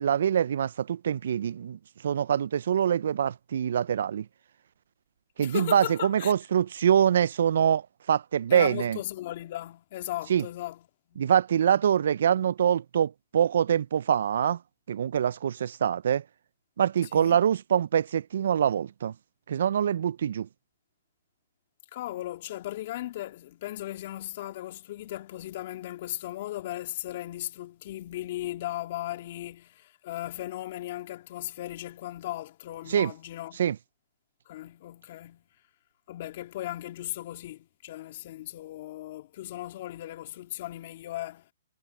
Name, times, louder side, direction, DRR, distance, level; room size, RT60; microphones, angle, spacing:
voice 1, 0.0-4.3 5.4-9.0 10.3-10.4 11.2-14.6 14.9-16.2 16.8-19.1 19.5-20.5 32.9-33.1 33.6-33.8, right 9 dB, 65° right, 0.5 m, -24 dB
voice 2, 5.4-6.3 8.5-10.8 17.1-17.4 21.9-33.6 34.5-35.4 36.1-41.4, left 14 dB, 50° left, 2.1 m, -37 dB
hypercardioid pair, 135°, 0 cm